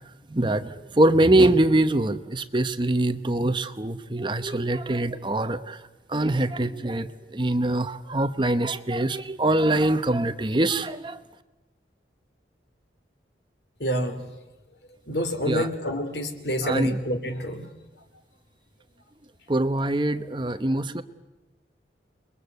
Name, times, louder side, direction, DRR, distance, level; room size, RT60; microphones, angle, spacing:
voice 1, 0.3-5.8 6.1-11.2 15.4-15.7 16.6-17.0 19.5-21.0, right 1 dB, 25° right, 11 dB, 0.9 m, -23 dB
voice 2, 13.8-14.2 15.1-17.7, equal, 65° left, 7 dB, 3.2 m, -27 dB
29.0 x 22.0 x 8.2 m, 1.1 s
head